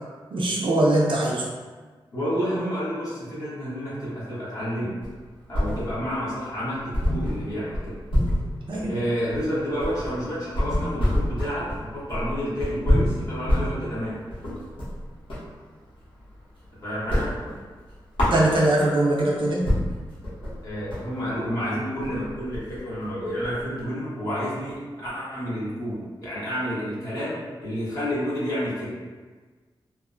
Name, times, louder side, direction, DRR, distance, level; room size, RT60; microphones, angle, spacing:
voice 1, 0.3-1.4 8.7-8.9 18.3-19.6, right 1 dB, 70° right, -3 dB, 0.5 m, -21 dB
voice 2, 2.1-4.9 5.5-7.9 8.9-14.1 16.8-17.3 20.6-28.9, equal, 40° left, -10 dB, 1.2 m, -30 dB
sound 1, 5.0-6.2 6.5-6.6 6.9-15.5 15.9-16.7 16.9-19.0 19.4-19.5 19.7-23.8, equal, 75° left, 0.9 m, -27 dB
2.9 x 2.0 x 2.4 m, 1.4 s
wide cardioid pair, 110°, 9 cm